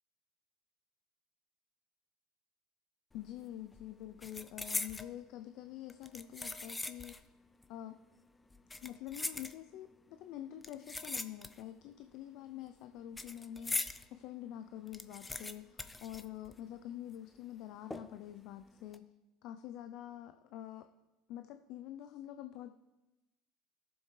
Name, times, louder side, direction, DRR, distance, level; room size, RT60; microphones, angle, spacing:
voice 1, 3.1-7.3 7.7-8.0 8.8-19.1 19.4-20.9 21.3-22.7, left 12 dB, 65° left, 8 dB, 0.5 m, -47 dB
sound 1, 3.2-3.4 3.7-5.1 5.9-7.3 7.6-7.7 8.5-9.9 10.6-11.8 12.1-14.0 14.4-14.5 14.7-16.9 17.1-17.2 17.9-18.3 18.7-19.0, left 2 dB, 15° left, 0.7 m, -41 dB
16.5 x 7.1 x 3.3 m, 1.0 s
hypercardioid pair, 75°, 0 cm